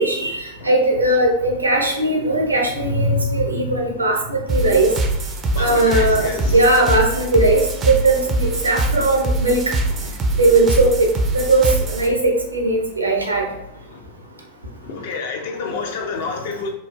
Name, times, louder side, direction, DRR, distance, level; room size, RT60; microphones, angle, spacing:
voice 1, 0.0-4.9 5.6-9.7 10.4-11.1 11.3-13.5, right 2 dB, 80° right, 0.5 m, -18 dB
sound 1, 4.5-12.1, right 2 dB, 25° right, 0.4 m, -23 dB
voice 2, 5.5-6.7 10.0-10.1 13.9-14.0 14.8-16.7, left 4 dB, 55° left, 0.5 m, -29 dB
3.0 x 2.0 x 2.3 m
figure-of-eight pair, 90°, 0 cm